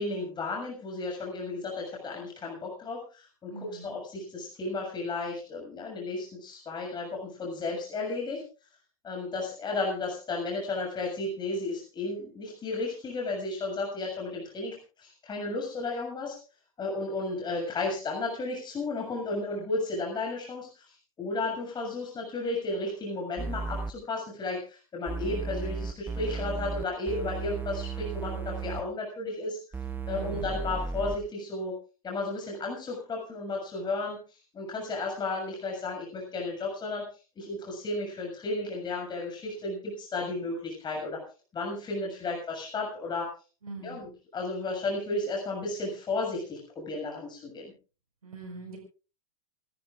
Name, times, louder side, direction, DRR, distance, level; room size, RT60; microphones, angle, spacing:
voice 1, 0.0-8.4 9.0-16.4 16.8-29.6 30.1-31.8 32.0-37.0 37.4-41.2 41.5-43.3 43.8-47.7, left 2 dB, 25° left, 0 dB, 6.9 m, -33 dB
voice 2, 3.5-3.9 30.1-30.5 43.6-44.1 48.2-48.8, right 3 dB, 90° right, 1 dB, 5.2 m, -42 dB
sound 1, 23.4-23.9 25.1-28.8 29.7-31.2, right 4 dB, 10° right, 1.0 m, -34 dB
28.0 x 13.5 x 2.6 m, 0.35 s
hypercardioid pair, 100°, 18 cm